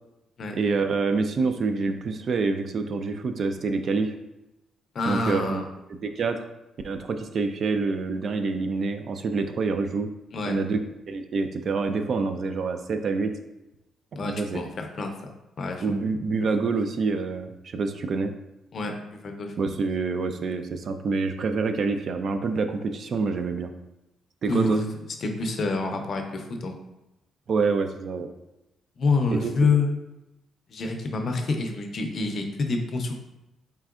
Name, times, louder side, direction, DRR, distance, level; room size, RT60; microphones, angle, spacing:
voice 1, 0.5-4.1 5.1-5.6 5.9-6.4 6.8-10.1 10.5-10.8 11.1-13.3 14.1-14.7 15.8-18.3 19.6-23.7 24.4-24.8 27.5-28.3 29.3-29.5, right 4 dB, 50° right, 7 dB, 0.3 m, -27 dB
voice 2, 4.9-5.7 10.3-10.6 14.2-15.1 15.6-16.0 18.7-19.5 24.5-24.9 25.2-26.8 29.0-29.9 30.7-33.1, left 3 dB, 45° left, 4 dB, 0.5 m, -27 dB
4.2 x 3.7 x 2.4 m, 0.94 s
cardioid pair, 135°, 0 cm